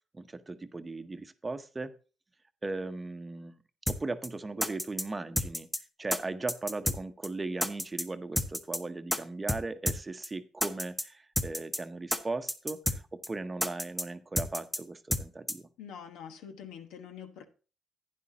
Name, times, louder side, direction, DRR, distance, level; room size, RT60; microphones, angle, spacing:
voice 1, 0.1-1.9 2.6-3.6 3.9-5.7 6.0-15.7, right 3 dB, 20° right, 9 dB, 0.8 m, -38 dB
sound 1, 3.9-4.3 4.6-5.0 5.4-5.8 6.1-6.2 6.5-7.0 7.2-7.3 7.6-8.0 8.4-8.8 9.1-9.2 9.5-9.6 9.9-10.0 10.2-10.3 10.6-11.0 11.4-11.8 12.1-12.2 12.5-13.0 13.2-13.3 13.6-14.0 14.4-14.8 15.1-15.2 15.5-15.6, left 1 dB, 5° left, 0.9 m, -30 dB
voice 2, 15.8-17.4, left 8 dB, 85° left, 6 dB, 1.2 m, -45 dB
11.0 x 9.6 x 2.8 m, 0.36 s
cardioid pair, 90°, 0 cm